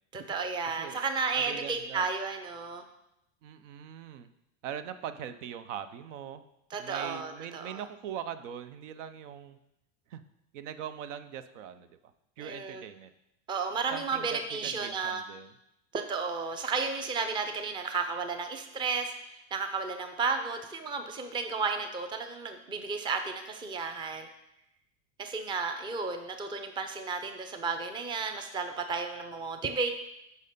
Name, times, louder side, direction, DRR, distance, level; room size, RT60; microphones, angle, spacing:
voice 1, 0.1-2.8 6.7-7.8 12.4-12.8 13.5-15.2 15.9-24.3 25.2-29.9, right 4 dB, 15° right, 6 dB, 0.5 m, -33 dB
voice 2, 1.3-2.1 3.4-4.3 4.6-6.4 6.8-9.6 10.1-10.2 10.5-11.9 12.4-13.1 13.9-15.5, right 9 dB, 75° right, 11 dB, 0.7 m, -41 dB
6.4 x 5.4 x 5.3 m, 0.84 s
supercardioid pair, 135°, 38 cm